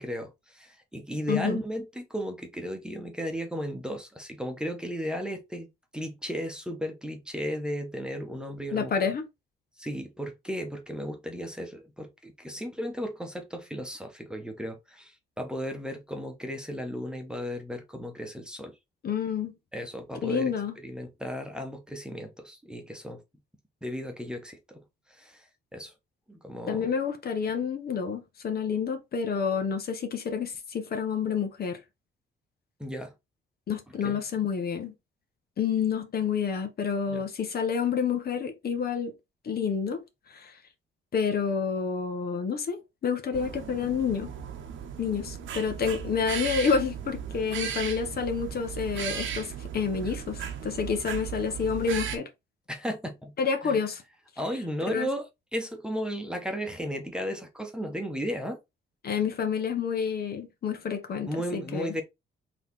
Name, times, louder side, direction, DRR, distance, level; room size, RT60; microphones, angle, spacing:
voice 1, 0.0-8.9 9.8-18.8 19.7-23.2 23.8-25.9 26.3-26.9 32.8-33.1 34.0-34.2 37.1-37.2 52.7-53.3 53.6-53.8 54.4-58.6 61.3-62.0, equal, 5° right, 1.0 m, -35 dB
voice 2, 1.3-1.6 8.7-9.2 19.0-19.6 20.2-20.7 26.7-31.8 33.7-34.9 35.6-39.1 39.4-40.0 40.3-40.6 41.1-44.3 45.0-52.3 53.4-54.0 54.9-55.1 59.0-61.9, left 6 dB, 50° left, 1.0 m, -29 dB
sound 1, 43.3-52.2, right 8 dB, 75° right, 0.9 m, -36 dB
4.0 x 3.0 x 3.5 m
cardioid pair, 90°, 20 cm